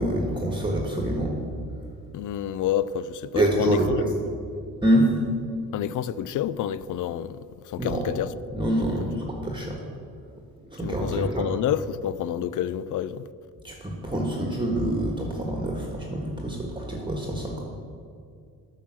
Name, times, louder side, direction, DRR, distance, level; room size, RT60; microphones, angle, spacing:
voice 1, 0.0-1.4 3.3-4.1 4.8-5.1 7.8-8.1 8.5-9.8 10.7-11.5 13.6-17.6, right 1 dB, 15° right, 1.4 m, -26 dB
voice 2, 2.1-4.0 5.7-8.3 10.8-13.3, left 10 dB, 60° left, 0.4 m, -29 dB
9.0 x 5.7 x 7.5 m
cardioid pair, 80°, 35 cm